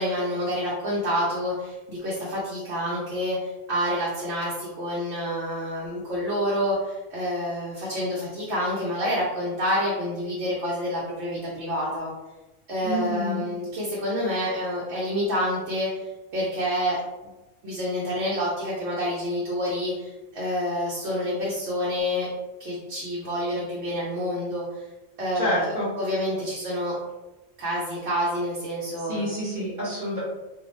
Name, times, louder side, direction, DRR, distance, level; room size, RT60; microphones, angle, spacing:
voice 1, 0.0-12.1 12.7-16.1 16.3-17.0 17.6-22.3 22.6-24.7 25.2-26.9 27.6-29.2, equal, 75° right, -6 dB, 0.9 m, -28 dB
voice 2, 12.8-13.4 25.3-25.9 29.1-30.2, equal, 50° right, -9 dB, 1.0 m, -28 dB
2.6 x 2.0 x 2.9 m, 1.1 s
omnidirectional pair, 1.1 m